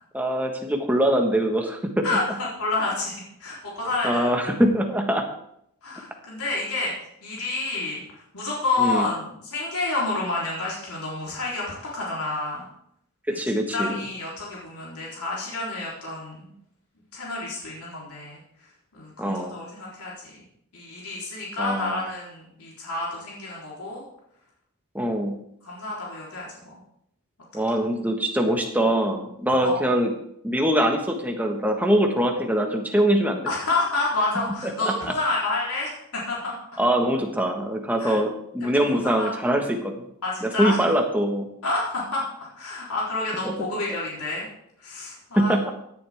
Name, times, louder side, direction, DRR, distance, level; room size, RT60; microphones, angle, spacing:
voice 1, 0.1-2.2 4.0-5.2 8.8-9.1 13.3-14.0 19.2-19.6 21.6-22.0 24.9-25.4 27.5-30.1 30.4-33.4 34.6-34.9 36.8-40.0 40.4-41.5 43.4-43.6 45.4-45.7, right 1 dB, 5° right, 3 dB, 1.5 m, -23 dB
voice 2, 2.0-4.5 5.8-6.9 7.2-8.0 8.3-12.6 13.3-13.4 13.7-16.5 17.1-18.4 18.9-20.4 20.7-24.0 25.6-26.7 29.6-29.9 33.5-36.6 38.0-38.2 38.7-39.7 40.2-40.8 41.6-42.2 42.6-44.5 44.8-45.6, left 2 dB, 85° left, -5 dB, 3.8 m, -29 dB
17.0 x 10.5 x 3.6 m, 0.74 s
head